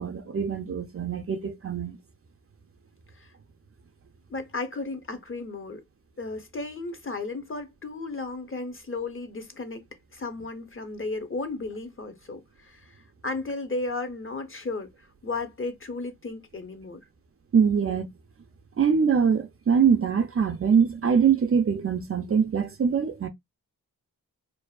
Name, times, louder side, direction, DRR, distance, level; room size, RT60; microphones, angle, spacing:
voice 1, 0.0-2.0 17.5-18.1 18.8-23.3, right 6 dB, 35° right, 0.5 m, -23 dB
voice 2, 4.3-5.8 6.2-9.9 10.1-17.0, left 3 dB, 35° left, 0.8 m, -34 dB
2.6 x 2.0 x 2.3 m
supercardioid pair, 40°, 39 cm